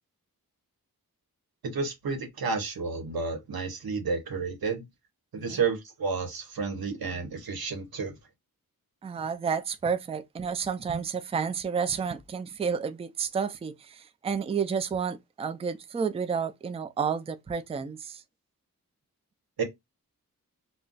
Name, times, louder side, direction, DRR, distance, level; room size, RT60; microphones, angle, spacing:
voice 1, 1.6-4.8 5.3-8.1 19.6-19.7, right 5 dB, 85° right, 0.9 m, -31 dB
voice 2, 9.0-18.2, right 6 dB, 20° right, 0.3 m, -31 dB
2.3 x 2.1 x 3.8 m
wide cardioid pair, 70°, 35 cm